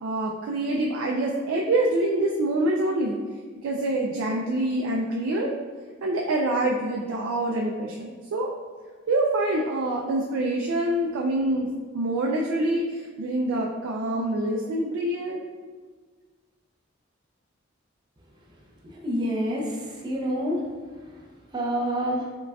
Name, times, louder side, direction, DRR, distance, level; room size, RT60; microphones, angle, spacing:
voice 1, 0.0-3.2 3.6-5.5 6.0-8.5 9.1-15.4, right 1 dB, 85° right, -1 dB, 0.3 m, -26 dB
voice 2, 19.0-20.6 21.5-22.3, equal, 20° right, -3 dB, 0.5 m, -27 dB
4.8 x 2.3 x 2.3 m, 1.5 s
head